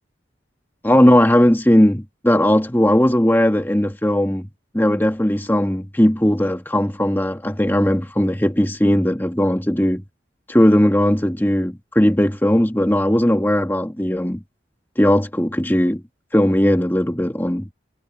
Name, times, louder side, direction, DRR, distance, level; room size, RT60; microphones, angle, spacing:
voice 1, 0.8-4.5 4.7-10.0 10.5-14.4 15.0-16.0 16.3-17.7, equal, 10° left, 1.4 m, -17 dB
head